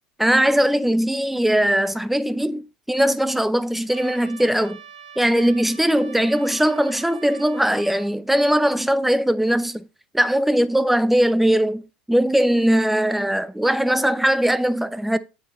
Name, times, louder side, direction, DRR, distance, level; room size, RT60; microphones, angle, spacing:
voice 1, 0.2-4.8 5.2-9.9 10.1-15.2, equal, 5° right, 0.7 m, -20 dB
Trumpet, 3.9-8.1, right 7 dB, 75° right, 2.1 m, -44 dB
8.2 x 8.1 x 3.0 m
figure-of-eight pair, 70°, 5 cm